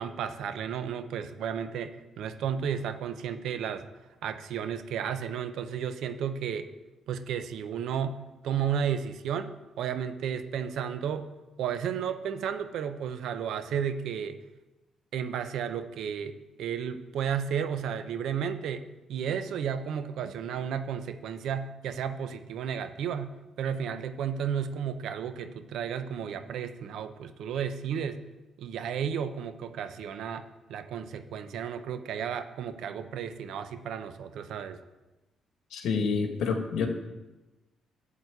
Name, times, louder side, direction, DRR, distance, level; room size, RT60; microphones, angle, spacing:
voice 1, 0.0-3.9 4.2-6.7 7.1-8.2 8.4-11.3 11.6-14.4 15.1-28.2 28.6-34.8, right 8 dB, 80° right, 10 dB, 0.8 m, -33 dB
voice 2, 35.7-36.9, left 5 dB, 75° left, 4 dB, 1.6 m, -28 dB
12.0 x 4.1 x 8.1 m, 1.1 s
cardioid pair, 90°, 0 cm